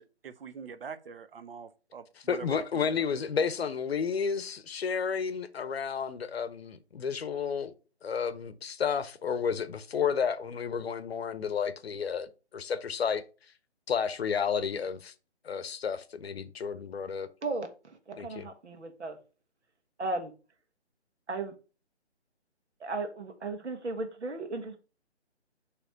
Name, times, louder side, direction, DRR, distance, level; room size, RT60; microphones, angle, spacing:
voice 1, 0.0-2.9, right 5 dB, 55° right, 0.7 m, -44 dB
voice 2, 2.2-7.7 8.0-13.2 13.9-15.1 15.4-17.3 18.2-18.5, left 6 dB, 60° left, 0.8 m, -31 dB
voice 3, 18.2-19.2 20.0-20.3 21.3-21.5 22.8-24.8, right 3 dB, 75° right, 1.6 m, -35 dB
6.0 x 3.3 x 5.0 m
figure-of-eight pair, 155°, 34 cm